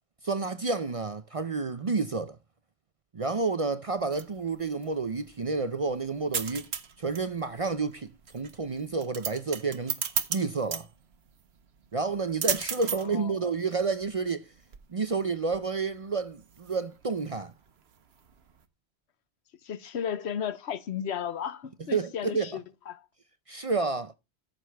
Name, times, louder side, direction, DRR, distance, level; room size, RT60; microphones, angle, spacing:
voice 1, 0.2-2.4 3.1-6.7 7.0-10.0 10.3-10.9 11.9-14.5 14.9-17.5 21.9-22.5 23.5-24.1, right 4 dB, 40° right, 0.5 m, -30 dB
sound 1, 3.9-18.6, right 7 dB, 70° right, 1.2 m, -37 dB
voice 2, 19.6-23.0, left 8 dB, 75° left, 1.1 m, -34 dB
14.0 x 6.7 x 3.4 m
omnidirectional pair, 1.1 m